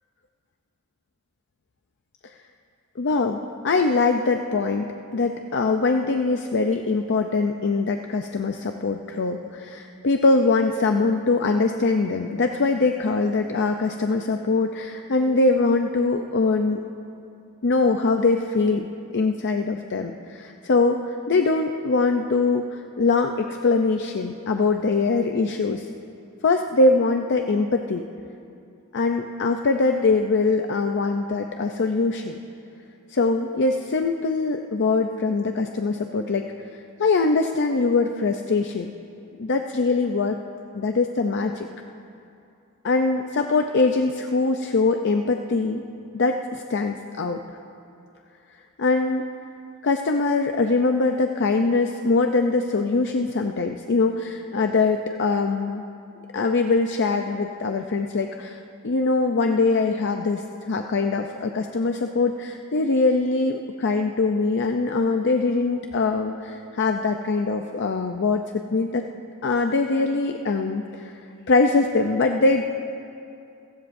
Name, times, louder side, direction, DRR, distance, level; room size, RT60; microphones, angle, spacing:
voice 1, 3.0-16.8 17.6-18.9 19.1-25.9 26.4-28.1 28.9-32.3 33.1-38.9 39.4-40.4 40.7-41.7 42.8-45.8 46.1-47.4 48.8-49.2 49.8-55.9 56.3-58.6 58.8-69.0 69.4-71.1 71.5-72.6, left 3 dB, 55° left, 5 dB, 0.5 m, -22 dB
26.5 x 15.0 x 2.6 m, 2.6 s
head